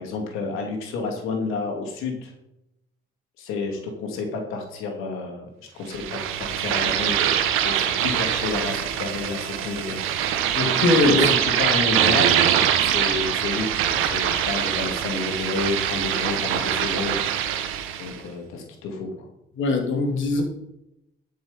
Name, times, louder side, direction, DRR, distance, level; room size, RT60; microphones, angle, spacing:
voice 1, 0.0-2.3 3.4-5.5 5.7-10.0 11.1-12.5 12.8-17.2 18.0-19.3, left 3 dB, 90° left, 3 dB, 2.6 m, -30 dB
sound 1, 5.9-18.2, right 9 dB, 90° right, 1.4 m, -23 dB
voice 2, 10.5-11.3 19.6-20.4, left 3 dB, 70° left, 2 dB, 3.3 m, -21 dB
12.5 x 6.8 x 5.2 m, 0.84 s
supercardioid pair, 70°, 21 cm